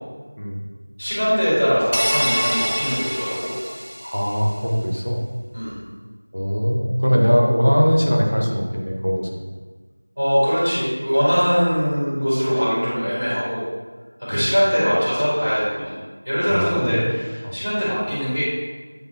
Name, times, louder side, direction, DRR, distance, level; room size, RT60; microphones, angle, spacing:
voice 1, 1.0-3.5 5.5-5.8 10.1-13.6 14.2-16.0 16.2-18.4, equal, 5° right, -27 dB, 1.4 m, -21 dB
sound 1, 1.9-4.4, equal, 80° left, 0.9 m, -25 dB
voice 2, 4.0-5.2 6.3-9.3 14.3-14.4 16.5-17.0 17.4-17.5, equal, 85° right, -1 dB, 1.4 m, -20 dB
8.4 x 4.2 x 3.1 m, 1.4 s
figure-of-eight pair, 180°, 0 cm